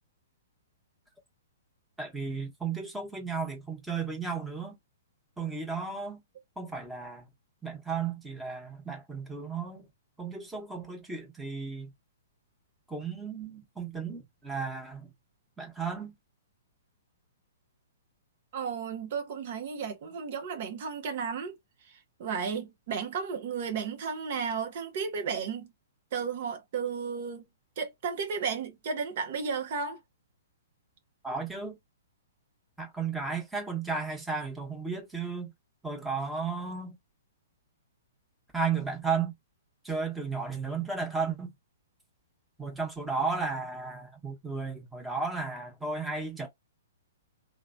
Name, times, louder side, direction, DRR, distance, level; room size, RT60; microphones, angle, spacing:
voice 1, 2.0-4.8 5.4-6.2 6.6-7.3 7.6-9.9 10.2-11.9 12.9-15.1 15.6-16.1 31.2-31.8 32.8-35.5 35.8-36.9 38.5-39.3 39.8-41.5 42.6-46.5, right 5 dB, 5° right, 1.0 m, -34 dB
voice 2, 18.5-21.6 21.9-25.7 26.1-27.4 27.8-30.0, right 6 dB, 50° right, 0.7 m, -33 dB
3.0 x 2.1 x 2.5 m
hypercardioid pair, 120°, 0 cm